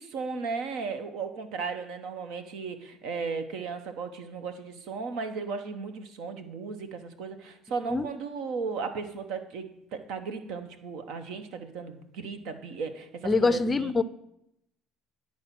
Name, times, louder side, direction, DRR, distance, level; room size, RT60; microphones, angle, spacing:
voice 1, 0.0-13.9, right 5 dB, 75° right, 9 dB, 0.9 m, -35 dB
voice 2, 13.2-14.0, left 3 dB, 25° left, 15 dB, 0.4 m, -24 dB
10.5 x 4.3 x 5.9 m, 0.80 s
supercardioid pair, 85°, 0 cm